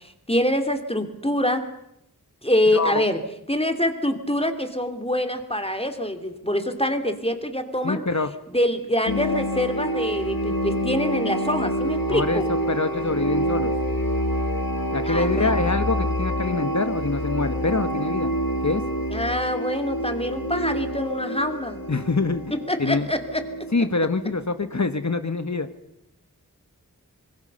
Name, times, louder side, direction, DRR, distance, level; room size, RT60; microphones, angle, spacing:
voice 1, 0.3-1.6 2.4-3.2 3.5-8.0 8.5-12.5 15.0-15.7 19.1-21.9 22.7-23.4, left 1 dB, 15° left, 7 dB, 2.8 m, -25 dB
voice 2, 2.7-3.0 7.8-8.3 12.1-13.7 14.9-18.3 18.6-18.8 21.9-22.4 22.8-23.1 23.7-25.7, left 3 dB, 55° left, 10 dB, 1.3 m, -25 dB
sound 1, 9.1-24.5, equal, 85° left, 1.9 m, -27 dB
25.5 x 20.5 x 6.8 m, 0.83 s
wide cardioid pair, 40°, 34 cm